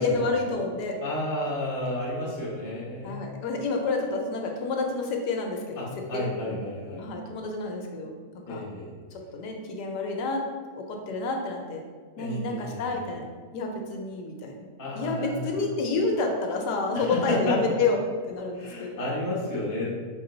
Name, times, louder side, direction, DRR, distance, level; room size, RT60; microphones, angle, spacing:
voice 1, 0.0-1.0 3.0-5.9 6.1-6.7 7.0-8.6 9.3-10.4 10.7-11.8 12.2-13.3 13.5-14.6 14.9-19.0, left 3 dB, 75° left, 2 dB, 1.2 m, -29 dB
voice 2, 1.0-3.3 5.8-7.1 8.5-8.9 12.2-13.0 14.8-15.6 16.9-17.8 18.6-20.0, left 1 dB, 20° left, -6 dB, 0.5 m, -31 dB
5.0 x 2.4 x 3.8 m, 1.6 s
omnidirectional pair, 1.9 m